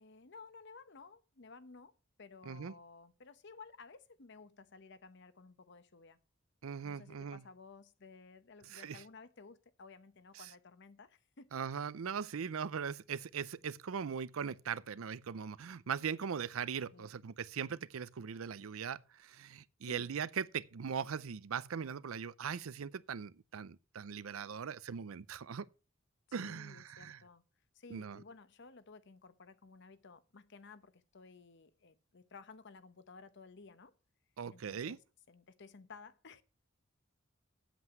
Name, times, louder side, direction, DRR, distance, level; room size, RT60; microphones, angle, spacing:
voice 1, 0.0-1.9 2.2-6.2 6.8-11.5 16.9-17.1 19.8-20.1 26.3-27.4 27.7-33.9 34.5-35.0 35.3-36.4, left 4 dB, 60° left, 0.8 m, -55 dB
voice 2, 6.6-7.4 8.7-9.0 10.4-10.5 11.5-25.7 26.3-27.2 27.9-28.2 34.4-35.0, right 7 dB, 90° right, 0.5 m, -40 dB
8.2 x 7.8 x 6.0 m
head